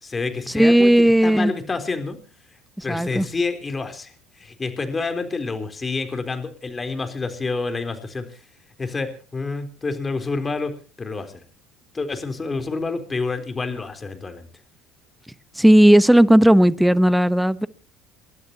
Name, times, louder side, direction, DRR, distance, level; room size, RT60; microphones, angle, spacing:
voice 1, 0.0-2.2 2.8-8.4 8.8-11.4 11.9-14.5, left 4 dB, 25° left, 3.7 m, -28 dB
voice 2, 0.5-1.5 2.9-3.3 15.6-17.7, right 1 dB, 5° right, 1.0 m, -15 dB
29.5 x 12.5 x 2.9 m
hypercardioid pair, 75°, 0 cm